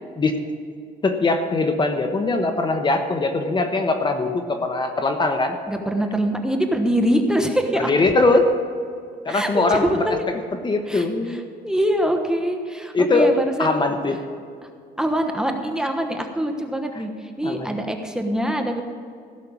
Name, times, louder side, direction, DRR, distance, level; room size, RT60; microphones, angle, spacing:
voice 1, 1.0-5.6 7.8-8.4 9.2-10.3 10.6-11.4 12.9-13.3 13.6-14.2 17.4-17.8, left 3 dB, 25° left, 6 dB, 1.1 m, -21 dB
voice 2, 5.7-7.9 9.3-10.2 10.9-13.8 15.0-18.8, equal, 5° right, 3 dB, 1.1 m, -24 dB
16.0 x 6.5 x 7.3 m, 2.2 s
cardioid pair, 110°, 17 cm